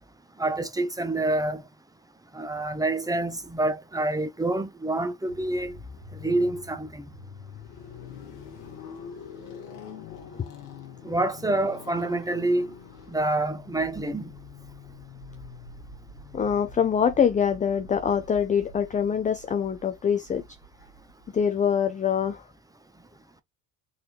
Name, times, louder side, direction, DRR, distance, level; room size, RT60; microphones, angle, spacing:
voice 1, 0.4-1.6 2.3-5.8 6.2-7.0 11.0-12.7 13.1-14.3, right 2 dB, 10° right, 0.7 m, -27 dB
sound 1, 5.3-21.5, left 5 dB, 80° left, 1.3 m, -45 dB
voice 2, 16.3-20.4 21.3-22.5, left 7 dB, 20° left, 0.4 m, -24 dB
4.0 x 2.7 x 2.9 m
hypercardioid pair, 65°, 47 cm